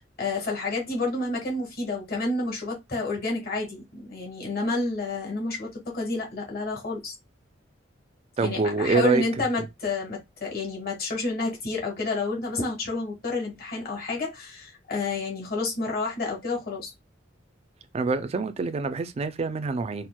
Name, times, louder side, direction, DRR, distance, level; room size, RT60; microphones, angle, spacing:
voice 1, 0.0-7.1 8.4-16.9, left 3 dB, 50° left, 1.2 m, -30 dB
voice 2, 8.4-9.2 17.9-20.1, right 4 dB, 30° right, 0.3 m, -25 dB
4.3 x 2.0 x 2.2 m
head